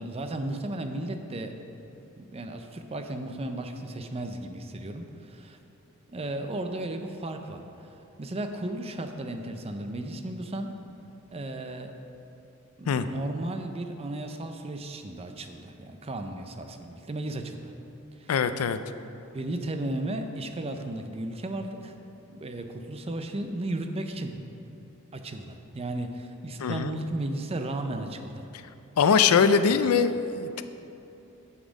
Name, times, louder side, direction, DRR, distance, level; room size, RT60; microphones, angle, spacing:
voice 1, 0.0-1.6 2.2-5.6 6.1-10.8 11.3-11.9 12.8-17.7 18.2-18.3 19.3-21.9 22.3-24.4 25.1-28.5, right 1 dB, 30° right, 6 dB, 0.5 m, -35 dB
voice 2, 18.3-18.8 26.6-27.0 29.0-30.6, left 6 dB, 80° left, 11 dB, 0.4 m, -22 dB
7.3 x 6.9 x 5.1 m, 2.9 s
head